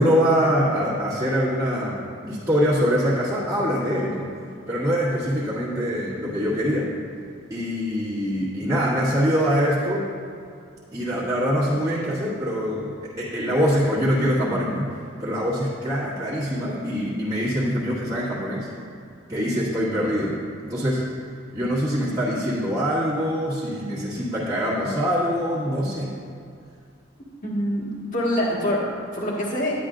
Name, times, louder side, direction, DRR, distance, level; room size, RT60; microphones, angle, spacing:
voice 1, 0.0-4.3 4.7-6.9 7.5-10.1 10.9-14.9 15.2-18.7 19.3-20.4 20.7-21.1 21.5-26.1, equal, 15° right, -12 dB, 1.7 m, -24 dB
voice 2, 27.4-27.9 28.1-29.8, equal, 40° left, -5 dB, 1.7 m, -25 dB
10.5 x 9.8 x 2.6 m, 2.4 s
head